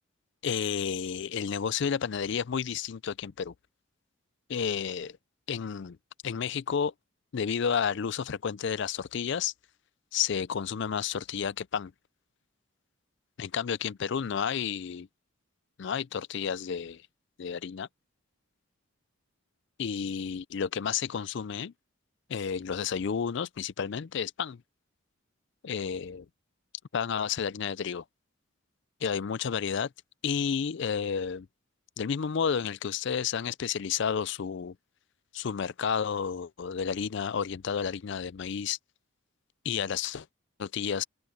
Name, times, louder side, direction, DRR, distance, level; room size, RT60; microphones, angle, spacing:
voice 1, 0.4-3.5 4.5-5.2 5.5-6.0 6.2-6.9 7.3-9.5 10.1-11.9 13.4-15.1 15.8-17.0 17.4-17.9 19.8-21.7 22.3-24.6 25.6-26.3 26.9-28.0 29.0-29.9 30.2-31.5 32.0-34.8 35.3-38.8 39.6-40.3 40.6-41.0, left 7 dB, 55° left, 0.4 m, -31 dB
open air
head